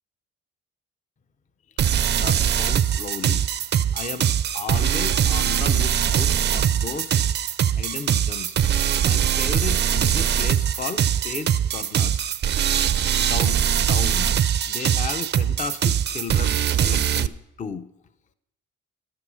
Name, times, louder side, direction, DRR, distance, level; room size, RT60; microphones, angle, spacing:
sound 1, 1.8-17.3, right 9 dB, 35° right, 0.4 m, -22 dB
voice 1, 2.1-3.5 3.9-7.2 7.7-8.6 9.0-12.4 13.1-13.6 13.9-17.9, left 5 dB, 25° left, 12 dB, 0.5 m, -34 dB
11.0 x 7.5 x 5.9 m, 0.86 s
cardioid pair, 90°, 30 cm